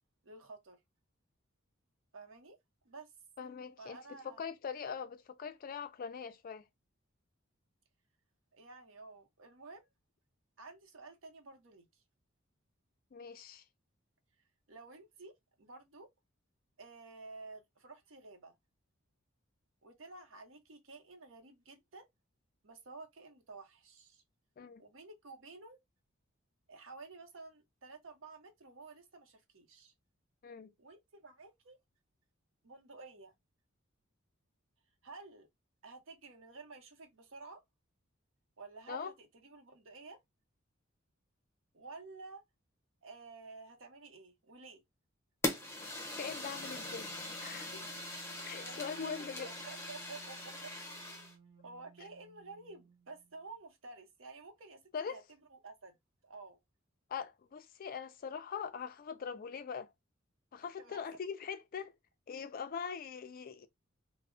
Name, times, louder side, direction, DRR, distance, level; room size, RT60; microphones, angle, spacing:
voice 1, 0.2-0.8 2.1-2.6 2.8-3.1 3.8-4.4 8.5-9.9 10.6-11.9 14.7-15.3 15.6-16.1 16.8-18.6 19.8-22.1 22.6-24.2 24.8-25.8 26.7-29.9 30.8-31.8 32.6-33.3 35.0-35.5 35.8-37.6 38.6-40.2 41.7-42.4 43.0-44.8 48.6-49.0 49.4-50.7 51.2-51.3 51.6-56.0 56.2-56.6 60.8-61.0, right 3 dB, 65° right, 0.8 m, -52 dB
voice 2, 3.4-6.6 13.1-13.6 24.6-24.8 30.4-30.7 38.9-39.1 46.2-47.8 48.5-49.5 54.9-55.2 57.1-59.9 60.5-61.9 62.3-63.7, left 6 dB, 45° left, 0.3 m, -42 dB
Fire, 45.4-51.3, left 1 dB, 15° left, 0.8 m, -41 dB
Wind instrument woodwind instrument, 46.5-53.5, right 6 dB, 25° right, 0.6 m, -58 dB
2.2 x 2.0 x 3.6 m
head